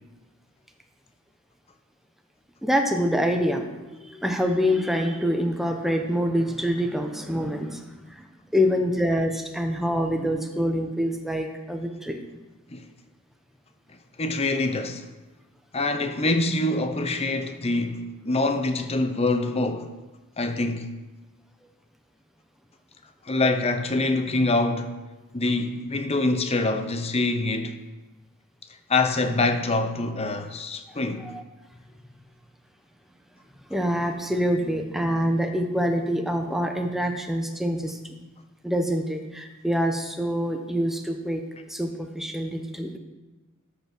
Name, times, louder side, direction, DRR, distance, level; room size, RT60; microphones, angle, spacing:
voice 1, 2.6-7.8 8.1-8.2 8.5-12.2 31.3-31.4 33.7-38.0 38.6-41.4 41.7-43.0, equal, ahead, 0.9 m, -25 dB
voice 2, 14.2-15.1 15.7-19.9 20.4-20.9 23.3-24.9 25.3-27.8 28.9-31.3, left 2 dB, 25° left, 0.7 m, -25 dB
13.5 x 5.7 x 6.0 m
head